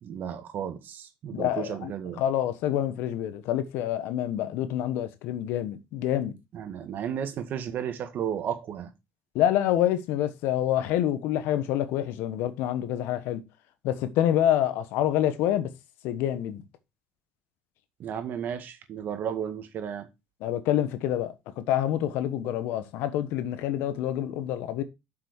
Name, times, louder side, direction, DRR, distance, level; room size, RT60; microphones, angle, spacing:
voice 1, 0.0-2.2 6.5-8.9 18.0-20.1, right 9 dB, 55° right, 1.8 m, -33 dB
voice 2, 1.3-1.9 2.2-6.3 9.3-13.4 13.8-15.7 16.0-16.6 20.4-24.8, left 11 dB, 75° left, 1.2 m, -27 dB
7.8 x 6.2 x 4.8 m
supercardioid pair, 85°, 4 cm